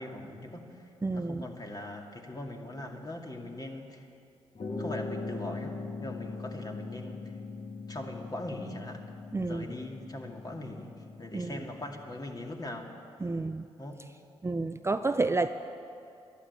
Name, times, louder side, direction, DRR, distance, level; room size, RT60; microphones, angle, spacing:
voice 1, 0.0-4.1 4.8-7.4 7.9-9.0 9.4-12.9 13.8-14.0, left 1 dB, 30° left, 2 dB, 2.2 m, -41 dB
voice 2, 1.0-1.4 9.3-9.7 11.3-11.6 13.2-13.7 14.4-15.5, right 3 dB, 20° right, 10 dB, 0.5 m, -30 dB
sound 1, 4.6-12.3, left 3 dB, 45° left, 1.8 m, -41 dB
11.5 x 11.0 x 8.6 m, 2.5 s
hypercardioid pair, 45°, 13 cm